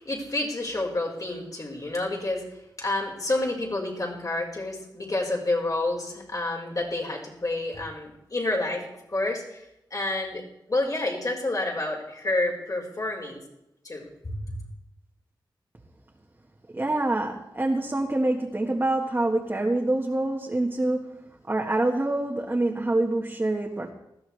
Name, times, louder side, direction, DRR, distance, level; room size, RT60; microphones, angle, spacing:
voice 1, 0.0-2.4 2.8-8.8 9.1-9.6 9.9-10.4 10.7-13.4 13.8-14.5, left 2 dB, 45° left, -2 dB, 4.9 m, -29 dB
voice 2, 16.7-23.9, right 2 dB, 25° right, -1 dB, 1.7 m, -26 dB
19.5 x 15.0 x 3.4 m, 0.85 s
wide cardioid pair, 75°, 8 cm